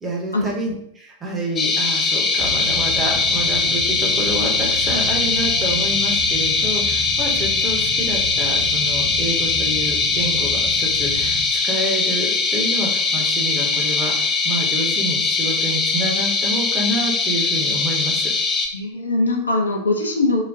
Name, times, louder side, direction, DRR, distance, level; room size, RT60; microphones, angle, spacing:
voice 1, 0.0-11.4 11.6-18.3, right 1 dB, 15° right, -2 dB, 0.8 m, -28 dB
sound 1, 1.6-18.7, left 4 dB, 20° left, 0.5 m, -21 dB
sound 2, 2.4-11.4, right 1 dB, 60° right, 1.5 m, -33 dB
voice 2, 18.7-20.4, left 2 dB, 75° left, 1 dB, 0.5 m, -21 dB
3.9 x 2.2 x 2.3 m, 0.71 s
figure-of-eight pair, 90°, 0 cm